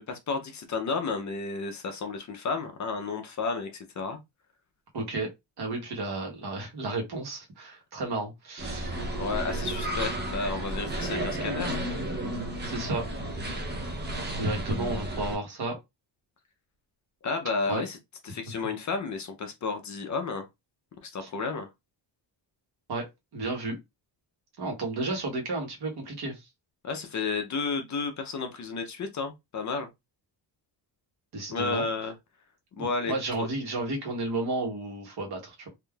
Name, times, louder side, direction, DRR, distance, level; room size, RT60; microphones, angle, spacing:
voice 1, 0.0-4.2 9.2-11.8 17.2-18.0 18.2-20.5 21.0-21.7 26.8-29.9 31.5-32.1 32.8-33.5, left 4 dB, 40° left, 0.5 m, -32 dB
voice 2, 4.9-5.3 5.6-9.0 12.6-13.0 14.4-15.8 17.7-17.8 18.5-18.6 21.2-21.3 22.9-23.1 23.3-23.8 24.6-26.5 31.3-31.8 32.8-35.7, right 2 dB, 55° right, 1.2 m, -32 dB
sound 1, 8.6-15.4, right 1 dB, 25° right, 0.6 m, -32 dB
3.6 x 2.5 x 2.3 m
wide cardioid pair, 165°, 45 cm